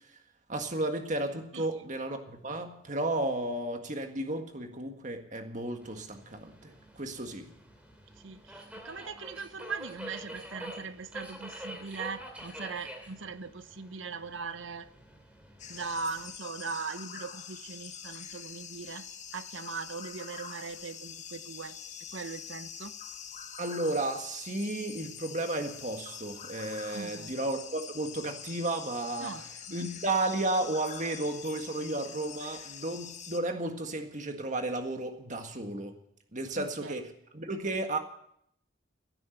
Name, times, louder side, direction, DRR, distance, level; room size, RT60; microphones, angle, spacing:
voice 1, 0.5-7.5 23.6-29.4 29.7-35.9 36.3-38.0, right 2 dB, 40° right, 5 dB, 1.8 m, -33 dB
voice 2, 1.5-1.9 8.2-14.9 15.7-19.1 19.3-21.8 22.1-22.9 26.9-27.3 29.2-29.4 36.6-36.9, right 4 dB, 75° right, 12 dB, 1.0 m, -40 dB
Subway metro underground, 5.8-16.4, equal, 5° right, 2.6 m, -47 dB
sound 1, 15.6-33.4, left 8 dB, 35° left, 1.1 m, -45 dB
16.5 x 9.4 x 8.0 m, 0.71 s
head